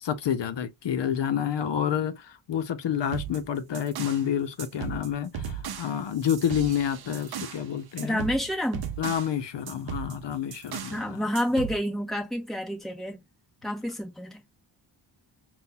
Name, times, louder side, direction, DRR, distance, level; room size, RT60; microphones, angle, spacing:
voice 1, 0.0-8.3 9.0-11.2, left 9 dB, 65° left, 0.7 m, -29 dB
sound 1, 3.0-4.3 4.6-7.6 8.0-9.3 9.7-11.0 11.3-11.8, right 7 dB, 55° right, 0.6 m, -37 dB
voice 2, 8.0-8.9 10.9-13.2 13.6-14.4, equal, ahead, 0.9 m, -29 dB
5.5 x 2.3 x 2.2 m
wide cardioid pair, 165°, 45 cm